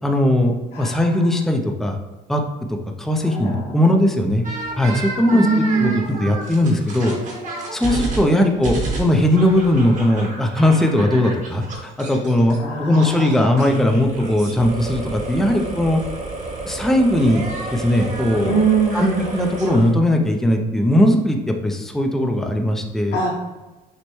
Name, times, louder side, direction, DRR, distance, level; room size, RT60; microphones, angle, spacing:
voice 1, 0.0-2.0 2.3-2.4 3.0-4.4 4.8-7.1 7.7-16.0 16.7-17.4 17.7-18.6 18.9-23.2, left 1 dB, ahead, 3 dB, 0.4 m, -19 dB
voice 2, 0.7-1.3 3.3-4.0 5.3-6.3 8.1-8.9 12.6-13.5 18.4-19.3 23.1-23.3, right 4 dB, 65° left, -6 dB, 1.1 m, -23 dB
sound 1, 4.4-12.6 12.9-19.9, right 2 dB, 50° right, 1.2 m, -30 dB
6.2 x 2.1 x 3.0 m, 1.1 s
cardioid pair, 110°, 17 cm